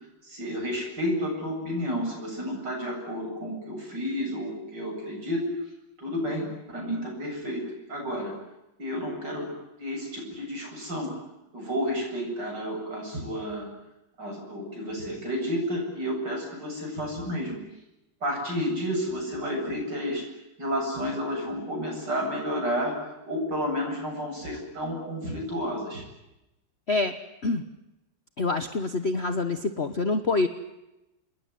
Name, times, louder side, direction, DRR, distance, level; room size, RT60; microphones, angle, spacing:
voice 1, 0.2-5.4 6.0-7.6 7.9-8.3 8.8-9.5 9.8-11.1 11.5-13.7 14.2-17.6 18.2-20.2 20.6-26.0, equal, 60° right, 0 dB, 8.6 m, -31 dB
voice 2, 28.4-30.5, left 3 dB, 40° left, 9 dB, 1.2 m, -26 dB
28.5 x 21.0 x 9.5 m, 0.94 s
omnidirectional pair, 2.1 m